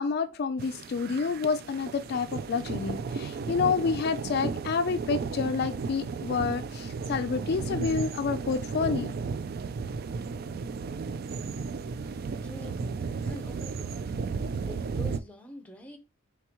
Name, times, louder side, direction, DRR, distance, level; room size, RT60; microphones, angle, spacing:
voice 1, 0.0-9.1, left 5 dB, 50° left, 0.3 m, -29 dB
sound 1, 0.6-15.2, right 5 dB, 50° right, 0.3 m, -34 dB
voice 2, 12.4-12.8 13.2-14.2 14.6-16.0, left 1 dB, 5° left, 0.7 m, -45 dB
4.7 x 3.4 x 2.9 m
head